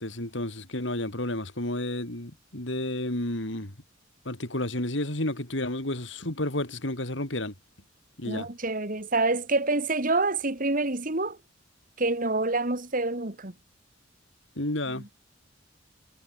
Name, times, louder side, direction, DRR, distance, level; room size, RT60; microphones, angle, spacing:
voice 1, 0.0-3.7 4.3-7.5 8.2-8.5 14.6-15.1, left 1 dB, 70° left, 4.0 m, -31 dB
voice 2, 8.3-11.4 12.0-13.5 14.9-15.1, right 2 dB, 45° right, 2.5 m, -27 dB
head